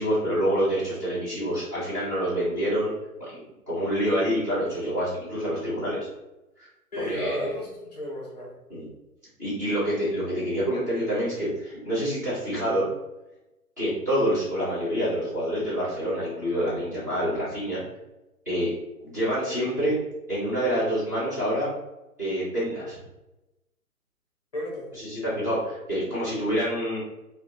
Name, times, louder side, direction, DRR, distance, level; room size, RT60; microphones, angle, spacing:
voice 1, 0.0-2.9 3.3-3.4 3.7-6.0 6.6-6.7 7.0-7.5 8.7-8.9 9.4-12.9 13.8-17.8 18.5-18.7 19.0-20.0 20.3-21.7 22.2-23.0 25.0-27.0, equal, 15° right, -12 dB, 0.5 m, -27 dB
voice 2, 6.9-8.5 24.5-24.9, left 1 dB, 30° left, -2 dB, 0.6 m, -33 dB
2.9 x 2.1 x 2.5 m, 0.99 s
figure-of-eight pair, 135°, 45 cm